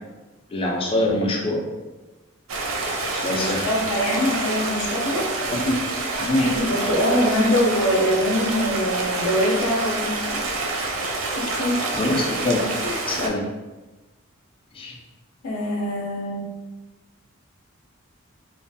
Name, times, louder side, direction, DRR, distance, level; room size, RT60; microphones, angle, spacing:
voice 1, 0.5-1.6 3.2-3.7 5.5-5.8 6.2-6.6 11.9-12.6 13.0-13.4 14.7-14.9, left 1 dB, 25° left, 0 dB, 0.3 m, -24 dB
Stream, 2.5-13.3, right 2 dB, 70° right, 0.4 m, -27 dB
voice 2, 3.2-5.3 6.4-10.3 11.3-11.9 12.8-13.0 15.4-16.5, equal, 85° left, -2 dB, 0.5 m, -23 dB
2.5 x 2.3 x 2.5 m, 1.2 s
head